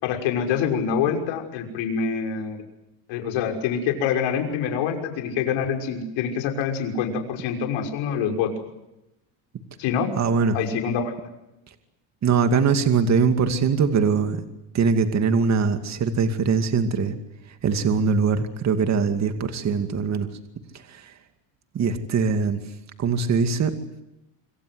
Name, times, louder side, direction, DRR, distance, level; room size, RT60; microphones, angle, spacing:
voice 1, 0.0-2.6 3.1-8.5 9.8-10.1 10.5-11.1, left 7 dB, 70° left, 4 dB, 6.1 m, -25 dB
voice 2, 10.2-10.6 12.2-14.4 14.7-17.2 17.6-20.3 20.9-21.1 21.7-22.6 23.0-23.7, right 5 dB, 35° right, 7 dB, 2.4 m, -22 dB
27.0 x 24.5 x 8.0 m, 0.90 s
cardioid pair, 140°, 48 cm